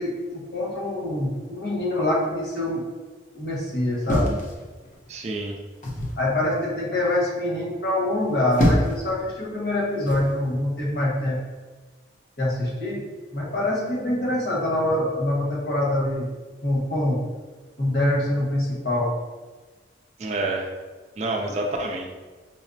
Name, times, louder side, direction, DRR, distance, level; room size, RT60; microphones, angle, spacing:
voice 1, 0.0-2.8 3.3-4.4 6.2-11.4 12.4-13.0 13.3-16.3 16.6-17.3 17.8-19.1, left 1 dB, 60° left, -4 dB, 1.1 m, -25 dB
sound 1, 4.1-5.1 5.8-6.2 8.2-9.1 10.1-10.3, left 1 dB, 40° left, 0.6 m, -24 dB
voice 2, 5.1-5.6 20.2-20.7 21.2-22.1, right 2 dB, 35° right, 1 dB, 0.3 m, -28 dB
5.2 x 2.0 x 2.6 m, 1.3 s
head